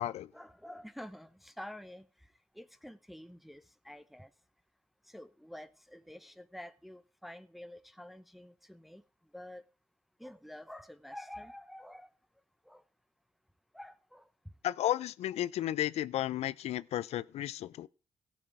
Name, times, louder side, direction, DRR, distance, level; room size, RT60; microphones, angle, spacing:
voice 1, 0.0-4.3 5.0-9.0 9.3-9.7 10.2-12.1 12.6-12.8 13.7-14.3, left 1 dB, ahead, 0.7 m, -49 dB
voice 2, 14.6-17.9, left 12 dB, 70° left, 0.4 m, -33 dB
16.5 x 6.3 x 4.7 m
supercardioid pair, 50°, 11 cm